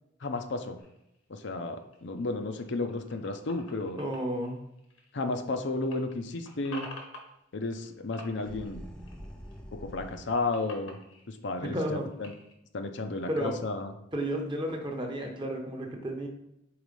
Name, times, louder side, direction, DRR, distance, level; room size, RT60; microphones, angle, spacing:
voice 1, 0.2-0.8 1.3-4.0 5.1-6.9 7.5-8.8 9.7-11.0 11.3-12.3 12.7-13.9, left 2 dB, 60° left, 6 dB, 0.6 m, -33 dB
sound 1, 0.8-5.5 5.8-7.9 8.1-9.6 9.9-12.6, left 2 dB, 85° left, 1.5 m, -49 dB
voice 2, 4.0-4.6 11.6-12.1 13.3-13.5 14.1-16.3, right 1 dB, 25° right, 2 dB, 0.9 m, -32 dB
sound 2, 8.3-10.5, equal, 5° left, 0.6 m, -45 dB
4.8 x 4.1 x 5.3 m, 0.84 s
head